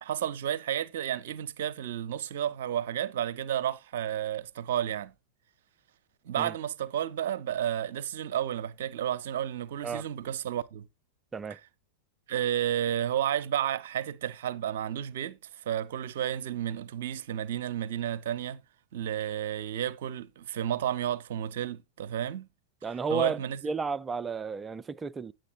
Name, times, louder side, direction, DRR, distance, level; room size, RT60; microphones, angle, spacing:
voice 1, 0.0-5.1 6.2-10.9 12.3-18.6 18.9-22.5 23.1-23.6, right 10 dB, 55° right, 0.7 m, -32 dB
voice 2, 22.8-25.3, right 5 dB, 15° right, 0.4 m, -32 dB
9.9 x 7.7 x 3.0 m
figure-of-eight pair, 90°, 0 cm